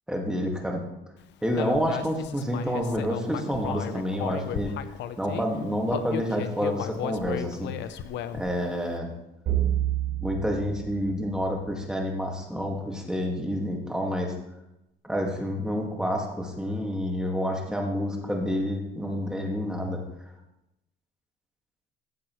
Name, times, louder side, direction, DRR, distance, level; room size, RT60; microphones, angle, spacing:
voice 1, 0.1-0.9 1.4-4.7 5.2-7.8 8.3-9.1 10.2-14.3 15.0-20.0, equal, 5° right, 0 dB, 1.9 m, -28 dB
Human voice, 1.6-5.5 5.9-8.6, left 10 dB, 75° left, 0.6 m, -35 dB
sound 1, 9.5-11.9, right 12 dB, 60° right, 3.6 m, -29 dB
15.0 x 7.7 x 3.1 m, 0.89 s
cardioid pair, 120°, 18 cm